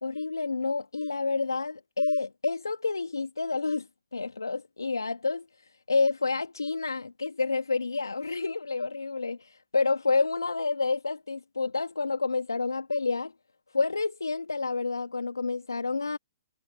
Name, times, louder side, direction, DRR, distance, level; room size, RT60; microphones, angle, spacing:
voice 1, 0.0-13.3 13.7-16.2, left 4 dB, 85° left, 1.6 m, -29 dB
figure-of-eight pair, 125°, 2 cm